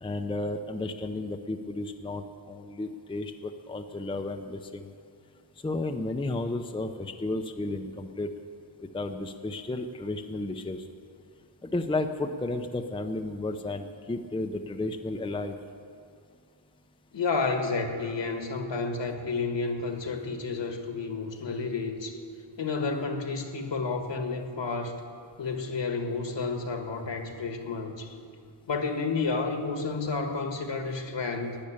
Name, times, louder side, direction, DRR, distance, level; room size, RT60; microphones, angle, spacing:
voice 1, 0.0-3.3 3.7-4.9 5.6-8.3 8.9-10.8 11.6-15.6, left 2 dB, 10° left, 6 dB, 0.6 m, -33 dB
voice 2, 17.1-22.2 22.6-25.0 25.4-28.2 28.7-31.6, left 4 dB, 65° left, 5 dB, 1.5 m, -31 dB
12.0 x 9.8 x 8.7 m, 2.3 s
wide cardioid pair, 120°, 47 cm